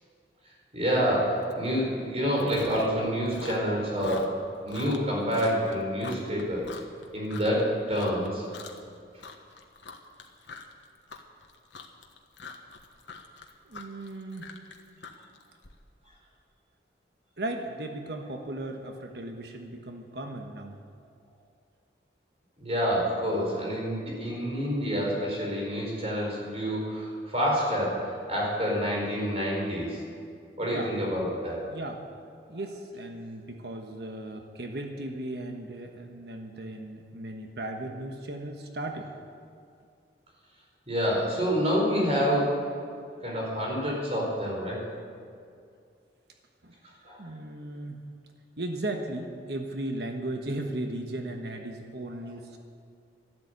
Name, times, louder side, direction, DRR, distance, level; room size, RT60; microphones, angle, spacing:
voice 1, 0.7-4.3 4.6-6.7 7.1-8.5 22.6-30.0 30.6-31.7 40.9-42.6 43.2-44.8 47.0-47.2 52.2-52.3, equal, 35° right, -3 dB, 4.7 m, -28 dB
Chewing mastication, 1.5-1.7 2.0-3.0 3.3-7.6 7.9-8.3 8.5-8.9 9.2-15.7, left 4 dB, 90° left, 1.4 m, -43 dB
voice 2, 13.7-14.5 17.4-20.8 30.7-30.9 31.7-32.0 32.5-39.1 46.6-46.7 47.2-48.0 48.6-52.6, right 1 dB, 65° right, 3 dB, 1.3 m, -36 dB
13.0 x 12.0 x 8.3 m, 2.3 s
head